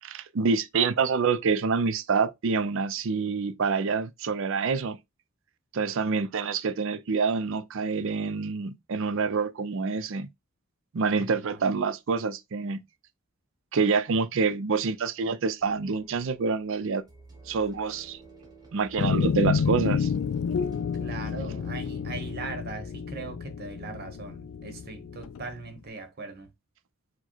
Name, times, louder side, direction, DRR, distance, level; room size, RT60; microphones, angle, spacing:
voice 1, 0.0-5.0 5.7-10.3 10.9-12.8 13.7-17.0 17.5-18.2 18.7-20.1, right 5 dB, 65° right, 0.5 m, -27 dB
voice 2, 11.2-11.6 21.0-26.5, right 4 dB, 50° right, 0.9 m, -40 dB
sound 1, 15.6-22.4, right 3 dB, 20° right, 1.2 m, -51 dB
sound 2, 19.0-25.5, left 6 dB, 70° left, 0.3 m, -29 dB
4.6 x 2.2 x 4.4 m
head